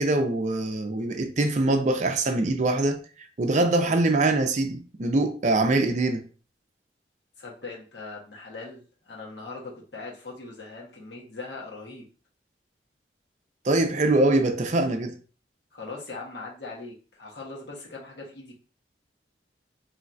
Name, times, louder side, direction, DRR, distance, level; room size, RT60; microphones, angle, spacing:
voice 1, 0.0-3.0 3.4-6.2 13.6-15.2, right 2 dB, 40° right, 0.5 m, -23 dB
voice 2, 7.4-12.0 15.7-18.6, left 3 dB, 75° left, 1.2 m, -40 dB
4.3 x 3.1 x 2.5 m
head